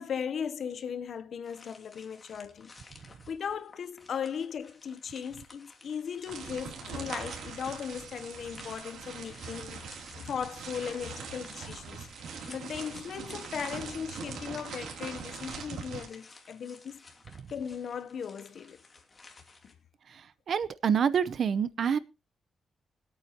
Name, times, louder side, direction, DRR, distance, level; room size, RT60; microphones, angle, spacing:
voice 1, 0.0-2.7 3.3-12.1 12.5-17.0 17.5-18.8 19.6-19.7, left 7 dB, 70° left, 0.7 m, -37 dB
sound 1, 1.4-19.7, left 3 dB, 35° left, 2.8 m, -55 dB
sound 2, 6.3-16.1, right 6 dB, 90° right, 2.8 m, -42 dB
voice 2, 20.1-22.0, right 7 dB, 65° right, 0.7 m, -27 dB
23.5 x 8.8 x 2.9 m
cardioid pair, 90°, 0 cm